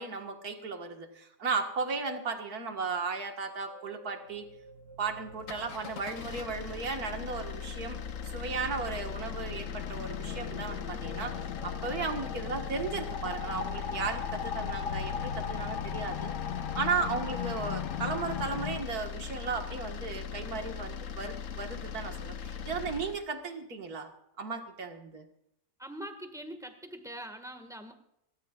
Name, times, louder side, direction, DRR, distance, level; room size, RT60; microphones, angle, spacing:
voice 1, 0.0-4.5 5.0-8.0 8.3-16.3 16.7-24.1 24.4-25.3, right 4 dB, 60° right, 5 dB, 2.1 m, -35 dB
sound 1, 3.3-8.0, right 1 dB, 40° right, 1.2 m, -53 dB
sound 2, 5.3-23.2, left 7 dB, 55° left, 1.1 m, -40 dB
sound 3, 8.2-18.8, left 8 dB, 80° left, 1.5 m, -38 dB
voice 2, 25.8-27.9, right 1 dB, ahead, 6 dB, 1.6 m, -43 dB
28.5 x 13.5 x 2.4 m, 0.80 s
omnidirectional pair, 1.8 m